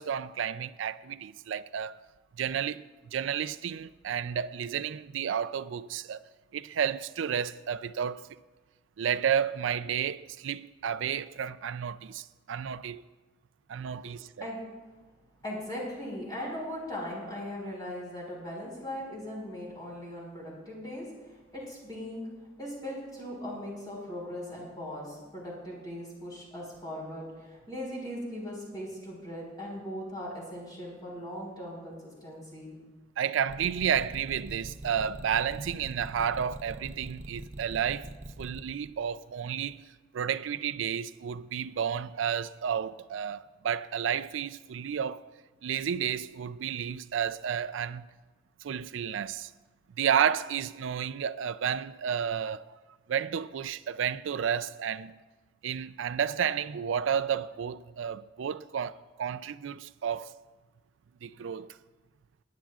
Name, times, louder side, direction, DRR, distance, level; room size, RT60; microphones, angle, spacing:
voice 1, 0.0-2.0 2.4-6.2 6.5-8.3 9.0-13.0 13.7-14.3 33.2-38.1 38.4-39.8 40.1-45.2 45.6-48.0 48.6-49.5 50.0-52.7 53.1-55.2 55.6-60.3 61.2-61.7, right 8 dB, 75° right, 0.4 m, -31 dB
voice 2, 15.4-22.2 22.6-32.8, equal, 20° left, 4.3 m, -39 dB
sound 1, 33.5-38.6, right 1 dB, 40° right, 0.7 m, -42 dB
21.5 x 10.0 x 2.4 m
head